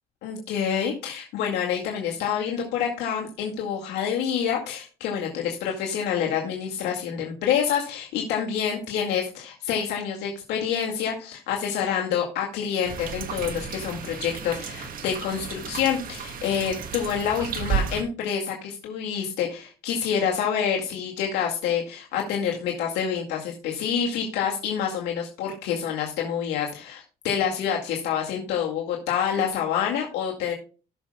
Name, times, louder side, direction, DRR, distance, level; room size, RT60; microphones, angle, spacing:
voice 1, 0.2-30.5, left 8 dB, 85° left, -1 dB, 2.1 m, -27 dB
sound 1, 12.8-18.0, right 7 dB, 55° right, 1.5 m, -33 dB
18.0 x 6.5 x 2.3 m, 0.36 s
cardioid pair, 110°, 17 cm